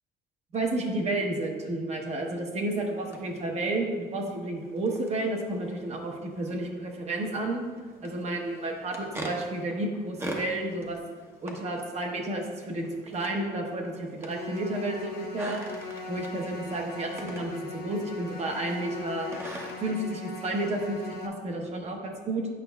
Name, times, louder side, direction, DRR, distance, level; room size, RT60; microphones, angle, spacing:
voice 1, 0.5-7.6 8.0-11.0 11.4-15.6 16.1-19.3 19.8-22.5, right 2 dB, 40° right, 1 dB, 1.0 m, -31 dB
sound 1, 2.8-20.1, right 1 dB, 15° right, 0.8 m, -45 dB
sound 2, 14.2-21.3, left 4 dB, 65° left, 0.8 m, -40 dB
8.6 x 5.3 x 2.3 m, 1.4 s
cardioid pair, 110°, 17 cm